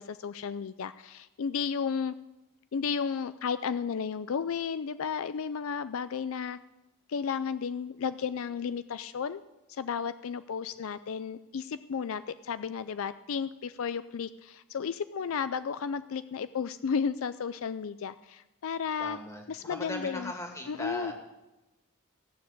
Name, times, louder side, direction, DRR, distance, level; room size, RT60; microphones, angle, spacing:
voice 1, 0.0-2.1 2.7-6.6 7.1-9.4 9.7-19.2 19.5-20.3 20.7-21.1, left 6 dB, 65° left, 14 dB, 0.4 m, -33 dB
voice 2, 19.0-21.1, left 1 dB, 15° left, 2 dB, 2.1 m, -38 dB
15.0 x 6.9 x 8.9 m, 1.0 s
head